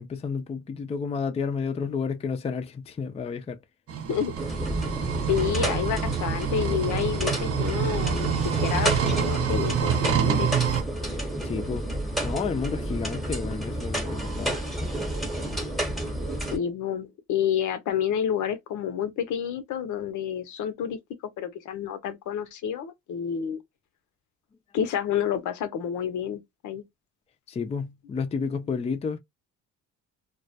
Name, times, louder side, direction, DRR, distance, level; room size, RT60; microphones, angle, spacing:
voice 1, 0.0-3.6 11.1-11.8 12.2-14.6 27.5-29.2, left 5 dB, 20° left, 0.4 m, -31 dB
sound 1, 3.9-10.8, right 8 dB, 50° right, 0.5 m, -27 dB
sound 2, 4.4-16.6, right 1 dB, ahead, 0.8 m, -30 dB
voice 2, 5.3-10.5 16.5-21.0 21.4-23.6 24.7-26.8, left 8 dB, 75° left, 0.6 m, -29 dB
2.2 x 2.1 x 2.6 m
cardioid pair, 90°, 30 cm